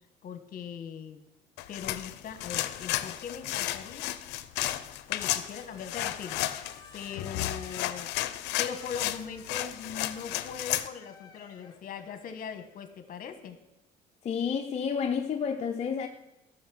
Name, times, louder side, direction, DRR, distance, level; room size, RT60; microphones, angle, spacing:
voice 1, 0.2-1.2 1.7-4.1 5.1-6.4 6.9-8.1 8.6-13.6, left 7 dB, 55° left, 1.3 m, -40 dB
sound 1, 1.6-10.9, left 14 dB, 85° left, 0.6 m, -33 dB
Squeak, 5.0-13.3, left 4 dB, 20° left, 1.5 m, -54 dB
voice 2, 14.2-16.1, left 6 dB, 40° left, 0.7 m, -30 dB
12.5 x 6.4 x 6.3 m
cardioid pair, 110°, 17 cm